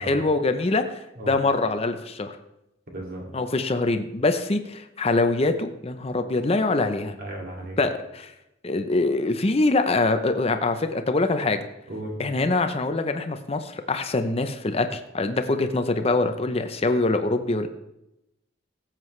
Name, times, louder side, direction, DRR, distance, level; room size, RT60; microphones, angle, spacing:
voice 1, 0.0-1.0 1.3-2.4 3.3-7.2 7.8-8.3 8.6-11.6 12.2-17.7, left 2 dB, 30° left, 8 dB, 0.7 m, -24 dB
voice 2, 2.9-3.3 7.2-7.8 11.9-12.2, right 1 dB, 50° right, -1 dB, 2.5 m, -35 dB
16.0 x 7.5 x 3.2 m, 0.87 s
head